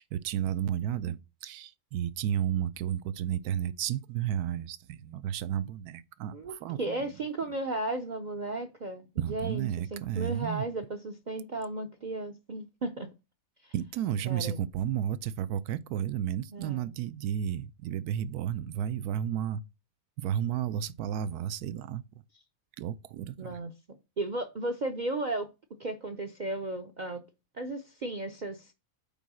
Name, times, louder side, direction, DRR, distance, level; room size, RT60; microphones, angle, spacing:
voice 1, 0.0-7.1 9.2-10.7 13.7-19.6 20.2-22.0 22.8-23.6, right 10 dB, 85° right, 1.1 m, -32 dB
voice 2, 6.3-13.1 13.6-13.7 14.3-14.6 16.5-16.9 23.4-23.7 24.2-25.5 25.8-27.2 27.6-28.7, right 2 dB, 55° right, 0.5 m, -35 dB
5.3 x 4.6 x 6.1 m
omnidirectional pair, 1.6 m